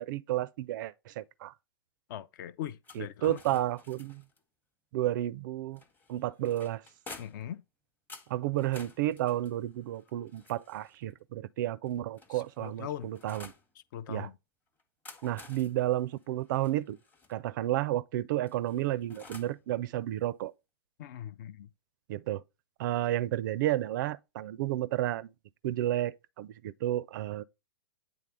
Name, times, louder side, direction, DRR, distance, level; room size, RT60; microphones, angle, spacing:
voice 1, 0.0-1.5 3.0-4.2 4.9-5.8 6.1-6.8 8.3-13.5 14.1-14.3 15.2-17.0 17.3-20.5 22.1-22.4 22.8-25.3 25.6-27.4, right 14 dB, 50° right, 0.4 m, -31 dB
voice 2, 2.1-3.4 7.2-7.6 12.3-13.2 13.9-14.4 21.0-21.7, left 11 dB, 50° left, 0.4 m, -41 dB
sound 1, 2.8-4.4 5.8-7.5 8.1-11.0 11.8-13.7 14.8-17.3 18.5-19.6, left 4 dB, 15° left, 0.8 m, -52 dB
8.6 x 3.6 x 3.4 m
hypercardioid pair, 115°, 13 cm